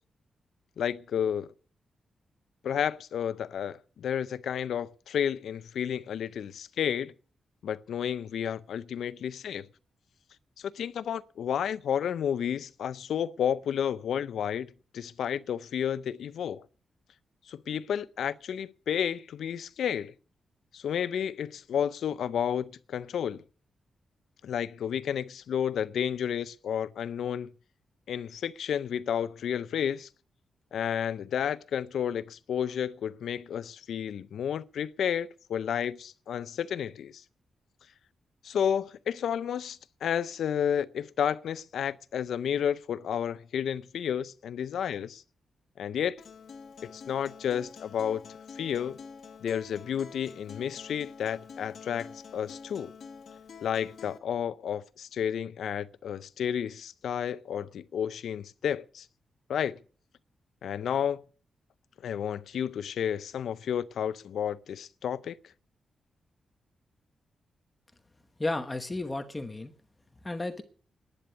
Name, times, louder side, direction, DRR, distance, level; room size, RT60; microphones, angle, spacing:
voice 1, 0.8-1.5 2.6-7.1 7.6-9.7 10.6-16.6 17.5-20.1 20.7-23.4 24.4-27.5 28.1-30.1 30.7-37.2 38.4-45.2 45.8-46.2 46.8-48.3 48.6-49.0 49.4-52.9 53.6-59.1 59.5-59.8 60.6-61.2 62.0-65.4, left 8 dB, 80° left, 0.5 m, -31 dB
Acoustic guitar, 46.2-54.2, left 5 dB, 55° left, 1.4 m, -47 dB
voice 2, 68.4-69.7 70.2-70.6, left 2 dB, 15° left, 1.1 m, -33 dB
10.5 x 9.7 x 8.2 m
wide cardioid pair, 170°, 0 cm